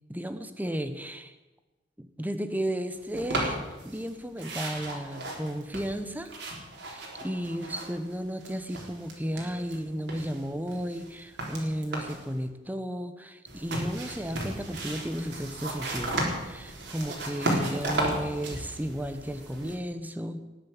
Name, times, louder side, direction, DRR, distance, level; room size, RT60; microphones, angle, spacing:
voice 1, 0.1-1.3 2.0-3.6 3.8-6.3 6.8-20.4, equal, 10° right, 9 dB, 1.1 m, -34 dB
sound 1, 3.1-4.1 4.4-8.1 8.4-9.8 10.1-12.3 13.5-19.7, right 1 dB, 65° right, 3.9 m, -34 dB
19.0 x 7.7 x 8.5 m, 1.1 s
head